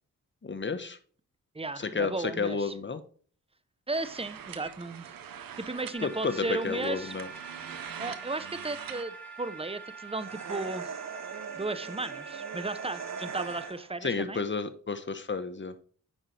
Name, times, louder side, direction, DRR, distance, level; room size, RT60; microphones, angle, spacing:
voice 1, 0.4-1.0 1.8-3.0 6.0-7.3 14.0-15.7, left 4 dB, 35° left, 10 dB, 1.1 m, -31 dB
voice 2, 1.5-2.7 3.9-5.0 5.6-7.1 8.0-10.9 11.5-14.4, right 2 dB, 15° right, 13 dB, 0.8 m, -35 dB
sound 1, 3.9-9.0, right 8 dB, 80° right, 0.8 m, -44 dB
sound 2, 5.9-13.7, right 5 dB, 5° left, 2.9 m, -45 dB
sound 3, 10.2-14.0, right 6 dB, 50° right, 0.9 m, -40 dB
9.0 x 5.3 x 3.4 m, 0.44 s
cardioid pair, 50°, 34 cm